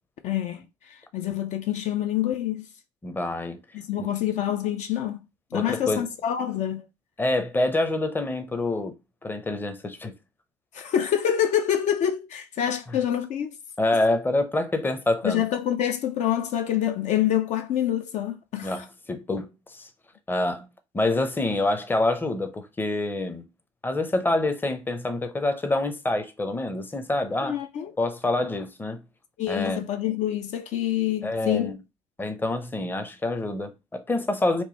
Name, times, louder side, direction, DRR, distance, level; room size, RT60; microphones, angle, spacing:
voice 1, 0.2-2.7 3.7-5.2 5.5-6.9 10.7-13.6 15.2-18.9 27.4-27.9 29.4-31.8, left 10 dB, 55° left, 0.5 m, -26 dB
voice 2, 3.0-3.6 4.0-4.1 5.5-6.1 7.2-8.9 9.2-10.1 13.8-15.4 18.6-19.9 20.3-20.7 20.9-23.4 23.8-27.6 28.0-29.0 29.5-29.8 31.2-31.7 32.2-34.6, left 2 dB, 15° left, 0.6 m, -26 dB
3.0 x 2.2 x 3.9 m
hypercardioid pair, 65°, 14 cm